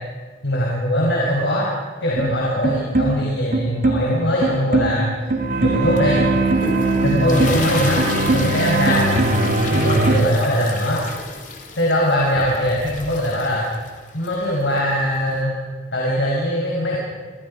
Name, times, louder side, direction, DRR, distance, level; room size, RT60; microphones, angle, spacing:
voice 1, 0.4-1.7 2.0-5.1 5.6-6.2 7.0-8.0 8.3-9.1 9.7-11.1 11.8-13.6 14.1-15.5 15.9-17.0, equal, 75° left, -3 dB, 5.3 m, -21 dB
sound 1, 2.2-10.2, right 2 dB, 45° right, 2.5 m, -20 dB
sound 2, 6.0-15.4, left 3 dB, 45° left, 3.2 m, -32 dB
29.0 x 23.0 x 5.4 m, 1.4 s
head